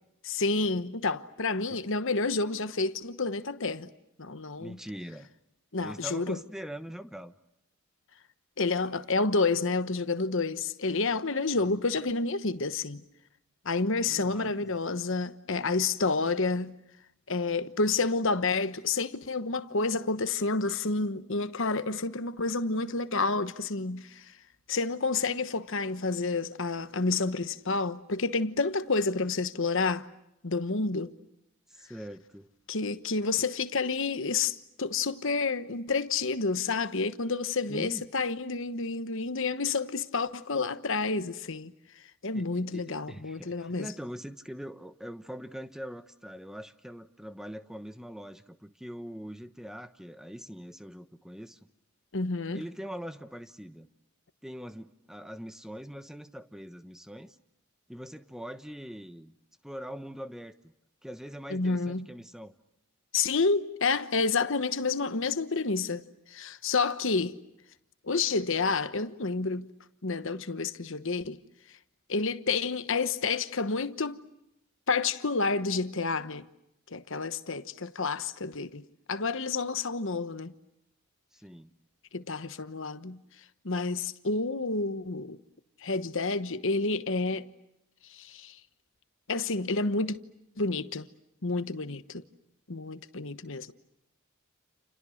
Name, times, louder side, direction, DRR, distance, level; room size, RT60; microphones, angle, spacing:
voice 1, 0.2-3.9 4.2-4.8 5.7-6.4 8.6-13.0 13.6-16.7 17.3-24.3 24.7-30.1 30.4-31.1 32.7-41.7 42.2-43.9 52.1-52.6 61.5-62.1 63.1-67.4 68.0-69.7 70.0-71.4 72.1-74.2 74.9-76.5 76.9-80.5 82.1-83.2 83.6-85.4 85.8-87.5 88.1-88.6 89.3-90.2 90.6-91.1 91.4-92.2 92.7-93.7, left 3 dB, 60° left, 1.2 m, -29 dB
voice 2, 4.6-5.3 5.8-7.3 14.1-14.7 31.7-32.5 33.4-33.5 37.7-38.1 42.3-51.6 52.5-53.9 54.4-57.4 57.9-59.3 59.6-60.7 61.0-62.5 81.3-81.7, equal, ahead, 1.0 m, -42 dB
30.0 x 29.0 x 6.5 m
head